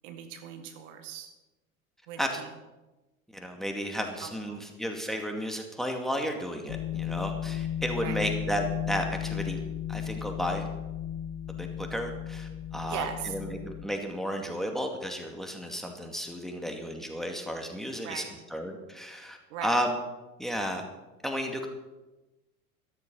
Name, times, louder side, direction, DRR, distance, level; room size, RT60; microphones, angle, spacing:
voice 1, 0.0-1.3 2.1-2.5 4.2-4.6 8.0-8.2 12.9-13.3 18.0-18.3 19.5-19.7, right 8 dB, 60° right, 7 dB, 1.9 m, -39 dB
voice 2, 3.3-9.6 9.9-10.6 11.6-18.2 18.5-19.9 20.4-20.8 21.2-21.7, equal, ahead, 3 dB, 2.3 m, -33 dB
sound 1, 6.7-13.9, left 10 dB, 50° left, 0.9 m, -35 dB
13.5 x 13.5 x 5.5 m, 1.1 s
figure-of-eight pair, 75°, 43 cm